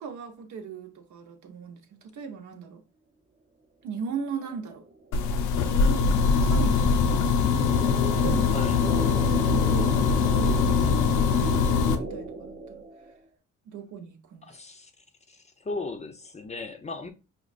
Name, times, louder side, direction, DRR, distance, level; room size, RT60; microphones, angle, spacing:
voice 1, 0.0-2.8 3.8-4.8 5.7-7.1 8.1-12.9 13.7-14.6, right 6 dB, 70° right, 0.8 m, -39 dB
sound 1, 4.3-13.2, right 2 dB, 30° right, 0.7 m, -35 dB
sound 2, 5.1-11.9, left 5 dB, 85° left, 0.5 m, -22 dB
voice 2, 14.5-14.9 15.3-17.1, left 3 dB, 20° left, 0.5 m, -36 dB
5.0 x 2.3 x 2.4 m
cardioid pair, 90°, 30 cm